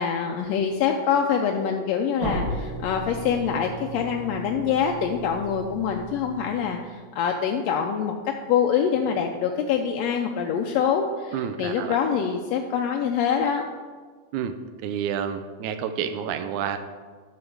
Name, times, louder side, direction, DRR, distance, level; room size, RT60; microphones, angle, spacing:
voice 1, 0.0-13.6, left 7 dB, 80° left, 3 dB, 1.6 m, -25 dB
sound 1, 2.2-7.0, right 1 dB, 50° right, 2.1 m, -35 dB
voice 2, 11.3-12.0 14.3-14.5 14.8-16.8, right 8 dB, 85° right, 8 dB, 2.0 m, -29 dB
10.5 x 5.7 x 4.7 m, 1.5 s
omnidirectional pair, 3.4 m